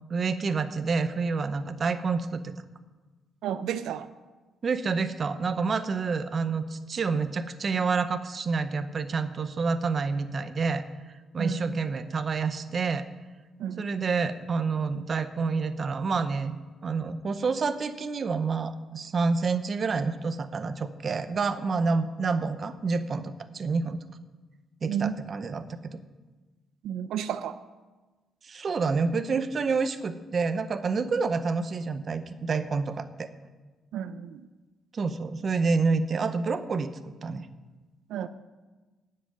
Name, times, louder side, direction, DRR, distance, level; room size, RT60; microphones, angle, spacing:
voice 1, 0.0-2.5 4.6-10.8 11.3-13.1 13.8-24.0 24.8-26.0 28.4-33.3 34.9-37.5, right 4 dB, 35° right, 10 dB, 0.7 m, -28 dB
voice 2, 3.4-4.1 11.4-11.9 13.6-13.9 24.9-25.2 26.8-27.6 33.9-34.5 38.1-38.3, right 9 dB, 85° right, 12 dB, 0.5 m, -32 dB
10.0 x 7.7 x 9.3 m, 1.3 s
cardioid pair, 150°, 0 cm